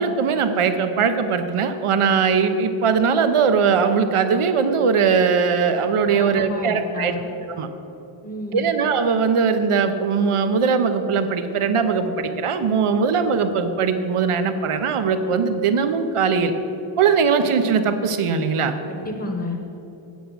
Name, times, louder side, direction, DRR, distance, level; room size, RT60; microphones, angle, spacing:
voice 1, 0.0-7.1 7.5-7.7 8.5-16.5 17.0-18.8, right 5 dB, 90° right, 8 dB, 0.9 m, -20 dB
voice 2, 6.1-7.2 8.2-8.7 18.9-19.6, left 2 dB, 30° left, 2 dB, 1.0 m, -30 dB
8.4 x 8.1 x 8.0 m, 2.9 s
wide cardioid pair, 175°, 49 cm